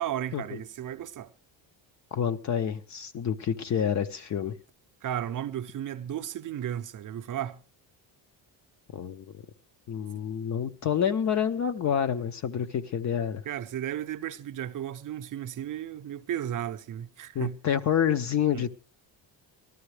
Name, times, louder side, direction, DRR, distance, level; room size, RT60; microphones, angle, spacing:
voice 1, 0.0-1.3 5.0-7.6 13.4-17.6 18.5-18.7, right 11 dB, 45° right, 0.6 m, -34 dB
voice 2, 2.1-4.5 8.9-9.3 9.9-13.4 17.3-18.7, left 8 dB, 40° left, 0.7 m, -28 dB
19.5 x 13.0 x 3.3 m
cardioid pair, 170°, 44 cm